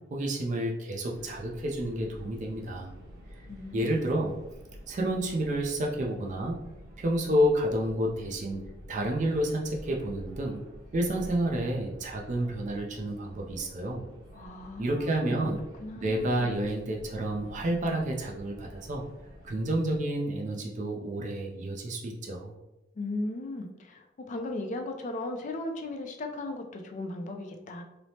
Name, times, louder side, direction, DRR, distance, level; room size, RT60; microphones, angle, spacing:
voice 1, 0.1-2.9 3.7-4.3 4.9-6.6 7.0-8.6 8.9-10.6 10.9-14.0 14.8-15.6 15.9-19.0 19.4-22.5, right 1 dB, 40° right, 0 dB, 0.4 m, -30 dB
sound 1, 1.1-20.0, equal, 20° right, 0.8 m, -49 dB
voice 2, 3.5-4.0 14.3-15.5 15.8-16.7 23.0-27.8, left 2 dB, 40° left, 4 dB, 0.3 m, -37 dB
3.1 x 2.0 x 2.7 m, 0.97 s
head